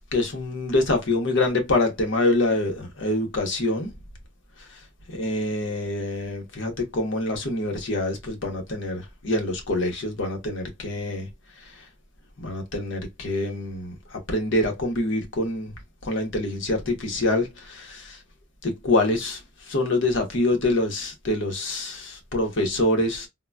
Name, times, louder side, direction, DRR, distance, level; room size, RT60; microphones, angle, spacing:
voice 1, 0.0-3.9 4.6-4.7 5.1-11.3 11.6-11.9 12.4-18.2 18.6-23.3, left 2 dB, 70° left, 0.9 m, -26 dB
3.8 x 2.1 x 2.2 m
head